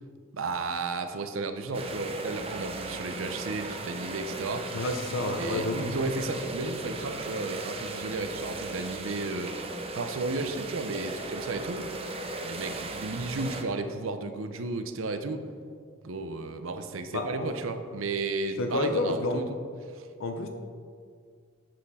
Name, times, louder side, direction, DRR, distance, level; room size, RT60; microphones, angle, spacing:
voice 1, 0.3-4.8 5.3-11.9 12.4-15.4 16.0-19.6 19.9-20.1, right 3 dB, 85° right, 8 dB, 0.6 m, -33 dB
sound 1, 1.7-13.6, right 2 dB, 30° right, 0.6 m, -37 dB
voice 2, 4.7-5.8 17.1-17.5 18.6-19.4 20.2-20.5, left 2 dB, 80° left, 5 dB, 0.7 m, -29 dB
7.6 x 6.5 x 4.1 m, 2.1 s
head